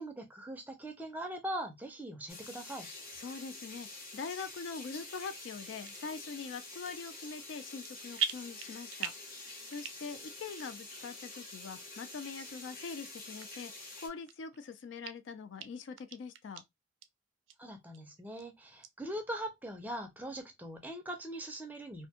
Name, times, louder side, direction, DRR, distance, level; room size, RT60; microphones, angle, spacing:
voice 1, 0.0-2.9 17.6-22.1, right 1 dB, 10° right, 0.4 m, -41 dB
sound 1, 2.3-14.1, left 2 dB, 45° left, 0.8 m, -47 dB
voice 2, 3.2-16.6, left 5 dB, 65° left, 0.3 m, -43 dB
sound 2, 5.8-6.0 6.6-7.1 7.4-7.9 8.2-9.3 9.7-10.2 10.6-10.7 11.3-11.4 12.1-12.2 12.9-13.0 13.4-13.5 14.0-14.6 15.0-15.1 15.6-15.7 16.0-16.6 17.0-17.1 17.5-17.6 17.9-18.4 18.8-18.9, right 8 dB, 75° right, 0.4 m, -39 dB
2.4 x 2.2 x 2.7 m
head